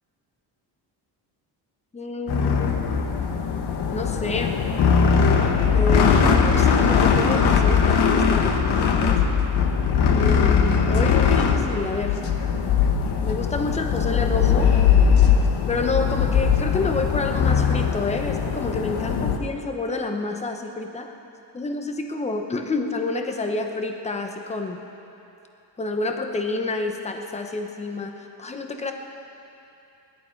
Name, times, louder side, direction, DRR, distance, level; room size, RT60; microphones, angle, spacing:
voice 1, 1.9-2.8 3.9-4.6 5.7-9.2 10.1-12.2 13.2-14.7 15.7-21.1 21.5-24.8 25.8-28.9, left 3 dB, 15° left, 4 dB, 0.9 m, -29 dB
sound 1, 2.3-19.4, left 6 dB, 70° left, 1.3 m, -20 dB
20.5 x 11.5 x 4.6 m, 2.9 s
cardioid pair, 135°, 41 cm